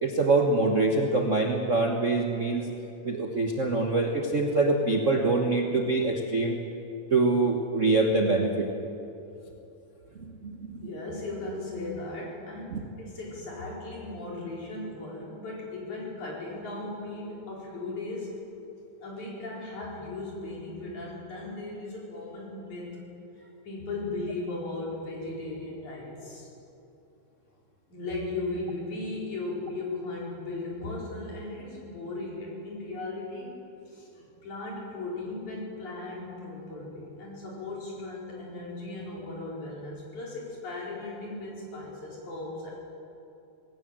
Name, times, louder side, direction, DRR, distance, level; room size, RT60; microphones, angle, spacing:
voice 1, 0.0-2.7 3.0-6.6 7.1-8.7 10.4-10.8 12.7-12.8, right 3 dB, 55° right, 2 dB, 0.8 m, -24 dB
voice 2, 10.8-18.3 19.0-23.0 23.6-26.5 27.9-33.5 33.9-42.7, left 2 dB, 80° left, -4 dB, 6.1 m, -37 dB
19.5 x 18.0 x 7.6 m, 2.9 s
omnidirectional pair, 3.3 m